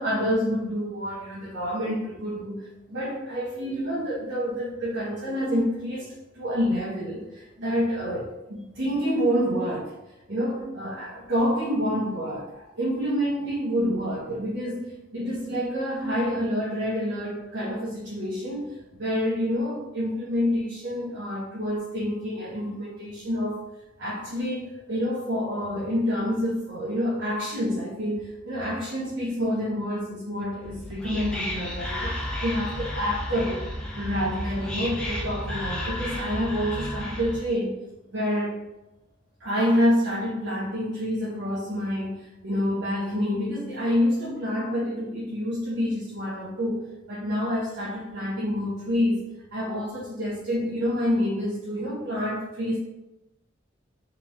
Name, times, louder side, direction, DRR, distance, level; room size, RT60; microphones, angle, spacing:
voice 1, 0.0-9.9 10.3-23.6 24.0-33.7 33.9-37.7 38.1-38.6 39.4-49.2 49.5-52.8, equal, 75° right, -8 dB, 1.1 m, -28 dB
Whispering, 30.6-37.5, left 1 dB, 5° left, 0.7 m, -32 dB
3.7 x 3.5 x 3.1 m, 0.95 s
head